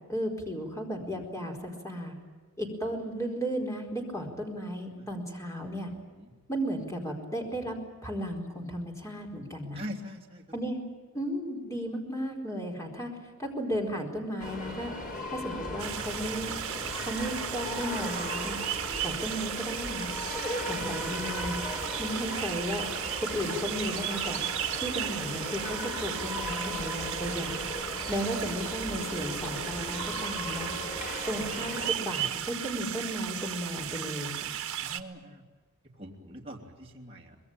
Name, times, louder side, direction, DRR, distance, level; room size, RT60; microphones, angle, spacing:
voice 1, 0.1-2.1 2.6-5.9 6.5-7.8 8.0-9.8 10.5-10.8 11.1-14.9 15.3-16.5 17.0-18.6 19.0-20.1 20.6-21.6 22.0-22.8 23.2-24.4 24.8-27.6 28.1-30.7 31.3-34.5, equal, 15° left, 1 dB, 4.4 m, -34 dB
voice 2, 9.7-10.4 31.6-31.7 34.8-35.4 36.0-37.4, equal, 25° right, -2 dB, 3.1 m, -43 dB
sound 1, 14.4-31.9, left 1 dB, 40° left, 5.2 m, -37 dB
sound 2, 15.8-35.0, right 10 dB, 65° right, 1.4 m, -35 dB
24.5 x 21.0 x 8.9 m, 1.4 s
head